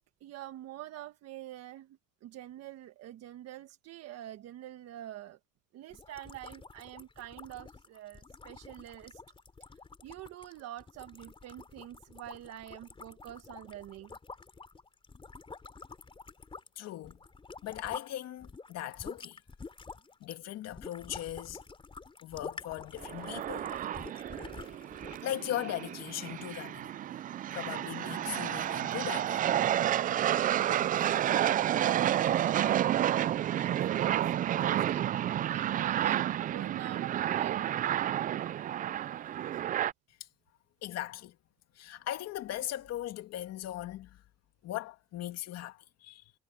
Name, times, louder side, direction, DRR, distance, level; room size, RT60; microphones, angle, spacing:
voice 1, 0.0-5.4 5.7-9.2 10.0-14.2 30.5-31.0 31.5-35.1 35.5-37.7, right 13 dB, 50° right, 1.5 m, -46 dB
sound 1, 5.9-18.1 18.4-25.3, left 4 dB, 15° left, 3.3 m, -48 dB
voice 2, 16.8-17.2 17.6-19.4 20.2-21.6 22.2-23.7 24.1-24.3 24.6-24.7 25.2-26.9 27.5-29.4 40.2-40.3 40.8-41.4 41.7-44.2 44.6-46.3, left 13 dB, 50° left, 2.3 m, -39 dB
sound 2, 23.0-39.9, right 11 dB, 30° right, 0.3 m, -30 dB
cardioid pair, 130°, 32 cm